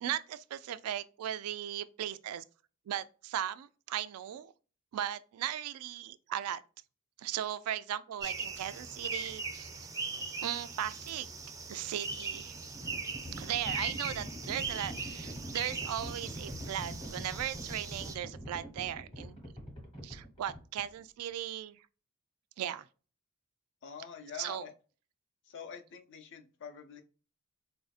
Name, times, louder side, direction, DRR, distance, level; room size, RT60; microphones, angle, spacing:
voice 1, 0.0-2.4 2.9-4.5 4.9-6.6 7.2-9.7 10.4-11.3 11.7-12.6 13.4-19.4 20.0-21.8 22.6-22.8 24.4-24.7, right 11 dB, 90° right, 0.3 m, -37 dB
sound 1, 8.2-18.2, right 4 dB, 15° right, 0.4 m, -40 dB
Livestock farm animals working animals, 12.0-21.0, equal, 25° left, 1.0 m, -44 dB
voice 2, 23.8-24.7 25.5-27.0, left 6 dB, 60° left, 0.6 m, -46 dB
4.1 x 2.5 x 2.3 m
head